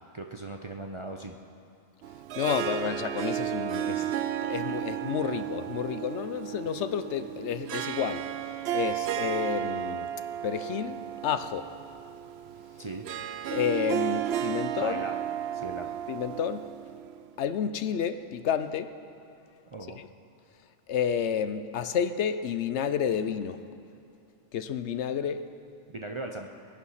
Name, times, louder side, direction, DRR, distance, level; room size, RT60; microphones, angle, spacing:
voice 1, 0.1-1.4 12.8-13.1 14.7-15.2 15.5-16.0 19.7-20.0 25.9-26.5, right 2 dB, 35° right, 2 dB, 0.5 m, -38 dB
Harp, 2.0-17.3, right 11 dB, 65° right, 0.7 m, -33 dB
voice 2, 2.4-8.3 8.7-10.1 10.4-11.7 13.5-15.0 16.1-16.6 17.4-18.9 20.0-20.1 20.9-23.6 24.5-25.4, left 8 dB, 65° left, 11 dB, 0.9 m, -30 dB
20.5 x 10.0 x 5.7 m, 2.6 s
omnidirectional pair, 1.3 m